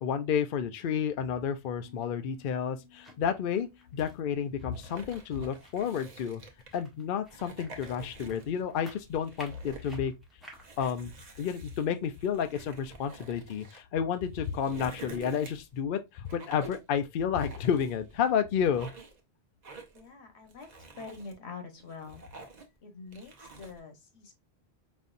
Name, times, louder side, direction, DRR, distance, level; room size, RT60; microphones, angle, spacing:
voice 1, 0.0-6.4 6.7-10.1 10.8-11.1 11.4-18.9, left 8 dB, 60° left, 0.6 m, -31 dB
sound 1, 1.6-10.9, equal, ahead, 1.2 m, -56 dB
Piano, 1.8-7.4, left 7 dB, 20° left, 2.3 m, -62 dB
sound 2, 4.7-6.8 7.3-8.6 9.0-9.9 10.5-13.8 14.3-15.8 16.3-16.9 17.4-18.3 18.6-19.2 19.6-20.1 20.5-21.3 21.8-22.8 23.1-23.8, right 2 dB, 45° right, 0.9 m, -48 dB
voice 2, 19.9-20.7 21.0-22.2 22.8-24.3, left 4 dB, 85° left, 1.3 m, -45 dB
5.1 x 2.7 x 2.4 m
omnidirectional pair, 1.1 m